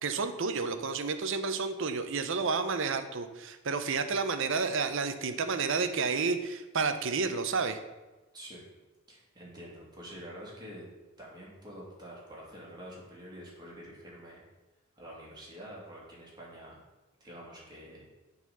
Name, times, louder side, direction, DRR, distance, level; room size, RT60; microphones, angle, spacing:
voice 1, 0.0-7.8, right 4 dB, 60° right, 9 dB, 0.7 m, -30 dB
voice 2, 9.1-10.9 11.2-14.4 15.0-16.7 17.2-18.0, equal, 20° right, -4 dB, 2.4 m, -47 dB
7.4 x 4.1 x 6.8 m, 1.1 s
head